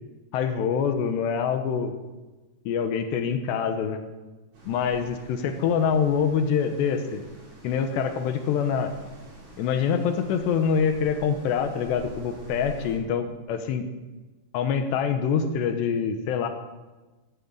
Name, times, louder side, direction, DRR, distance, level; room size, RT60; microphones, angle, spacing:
voice 1, 0.3-1.9 2.7-4.0 4.6-7.2 7.6-8.9 9.6-13.9 14.5-16.5, left 7 dB, 75° left, 7 dB, 2.9 m, -25 dB
sound 1, 4.5-13.0, right 2 dB, 90° right, 8.0 m, -47 dB
15.0 x 10.0 x 8.6 m, 1.2 s
omnidirectional pair, 5.6 m